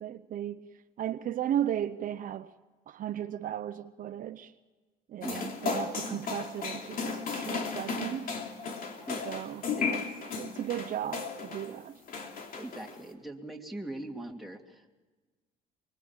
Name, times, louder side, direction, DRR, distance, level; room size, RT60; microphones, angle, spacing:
voice 1, 0.0-0.6 1.0-2.5 2.9-4.5 5.1-8.3 9.2-10.0 10.4-12.0, right 10 dB, 55° right, 0.8 m, -35 dB
sound 1, 5.2-11.7 12.1-13.1, left 5 dB, 55° left, 3.3 m, -35 dB
voice 2, 12.6-14.9, right 1 dB, ahead, 2.7 m, -41 dB
24.5 x 23.0 x 7.3 m
cardioid pair, 110°, 17 cm